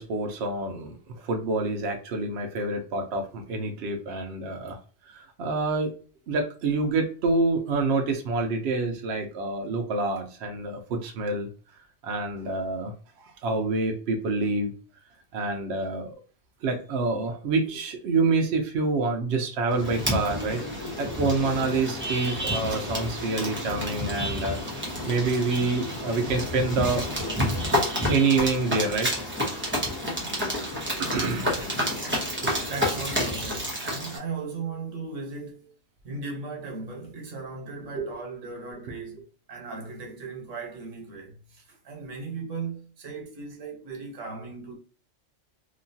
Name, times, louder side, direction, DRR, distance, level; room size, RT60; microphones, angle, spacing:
voice 1, 0.0-4.8 5.1-5.9 6.3-11.5 12.0-12.9 13.4-14.7 15.3-16.2 16.6-20.6 21.0-27.0 27.8-29.1 31.0-31.8 32.4-32.7 38.0-38.1, right 3 dB, 65° right, 0.8 m, -27 dB
sound 1, 19.7-34.2, equal, 10° right, 0.7 m, -29 dB
voice 2, 32.6-35.7 36.0-44.8, right 4 dB, 90° right, 1.3 m, -37 dB
2.9 x 2.3 x 2.6 m
omnidirectional pair, 1.2 m